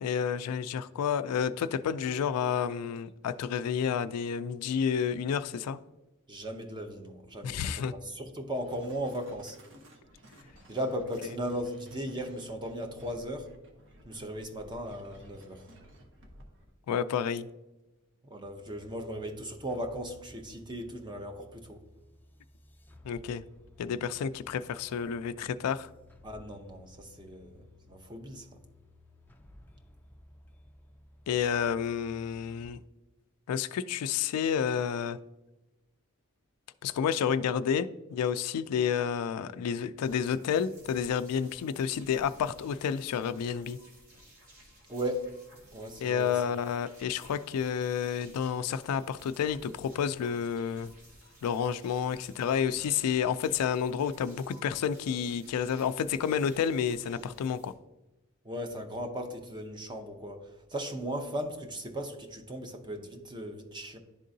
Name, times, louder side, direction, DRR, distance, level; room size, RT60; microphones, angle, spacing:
voice 1, 0.0-5.8 7.4-7.9 16.9-17.5 23.0-23.4 23.8-25.9 31.3-32.8 33.5-35.2 36.8-43.8 46.0-50.9 51.4-57.7, left 7 dB, 80° left, 0.3 m, -30 dB
voice 2, 6.3-9.6 10.7-13.5 14.0-15.6 18.2-21.8 26.2-28.6 44.9-45.3 45.7-46.5 58.4-64.0, equal, 20° right, 0.7 m, -37 dB
sound 1, 8.5-16.7, right 1 dB, 60° right, 1.0 m, -54 dB
sound 2, 18.4-32.7, left 1 dB, 10° left, 0.4 m, -57 dB
sound 3, 40.0-57.7, equal, 90° right, 2.0 m, -56 dB
11.0 x 3.7 x 2.6 m
head